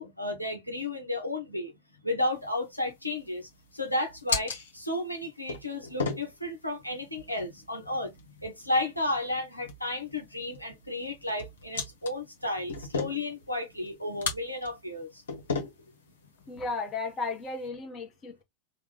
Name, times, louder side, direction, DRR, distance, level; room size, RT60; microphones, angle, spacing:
voice 1, 0.0-1.7 2.0-15.2, left 1 dB, 90° left, 1.0 m, -33 dB
sound 1, 2.3-17.7, left 4 dB, 65° left, 1.4 m, -39 dB
voice 2, 16.5-18.4, left 3 dB, 25° left, 1.4 m, -34 dB
3.4 x 2.5 x 3.2 m
figure-of-eight pair, 90°, 0 cm